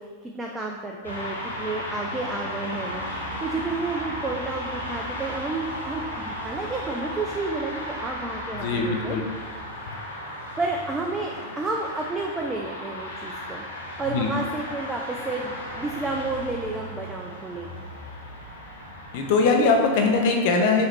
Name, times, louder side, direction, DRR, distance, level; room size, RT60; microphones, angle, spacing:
voice 1, 0.0-9.2 10.6-17.9, right 3 dB, 15° right, 0 dB, 0.4 m, -31 dB
sound 1, 1.0-20.3, left 1 dB, 75° left, 0.9 m, -35 dB
sound 2, 2.9-9.7, right 5 dB, 75° right, 0.6 m, -46 dB
voice 2, 8.5-9.2 9.9-10.0 14.1-14.3 19.1-20.9, left 4 dB, 50° left, 3 dB, 0.6 m, -21 dB
5.6 x 2.8 x 3.2 m, 1.5 s
figure-of-eight pair, 90°, 0 cm